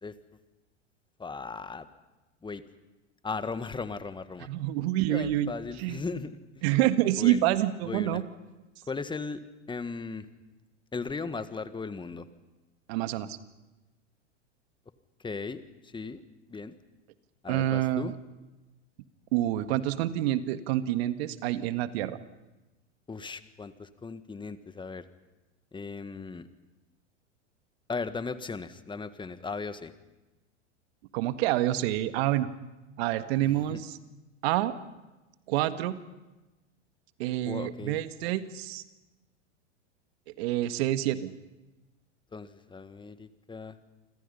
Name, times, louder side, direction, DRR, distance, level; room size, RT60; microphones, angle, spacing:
voice 1, 1.2-1.9 2.4-2.6 3.2-4.5 5.1-6.4 7.2-7.6 7.8-8.2 8.9-9.4 9.7-10.3 10.9-12.3 15.2-16.2 16.5-16.7 17.4-18.1 23.1-25.0 25.7-26.5 27.9-29.9 33.4-33.8 37.4-38.0 42.3-43.8, left 4 dB, 15° left, 11 dB, 1.6 m, -37 dB
voice 2, 4.4-5.5 5.8-6.0 6.6-8.2 12.9-13.4 17.5-18.2 19.3-22.2 31.1-32.5 33.0-34.0 34.4-34.7 35.5-36.0 37.2-38.8 40.4-41.3, right 13 dB, 55° right, 10 dB, 1.8 m, -27 dB
29.0 x 26.0 x 5.6 m, 1.1 s
hypercardioid pair, 90°, 36 cm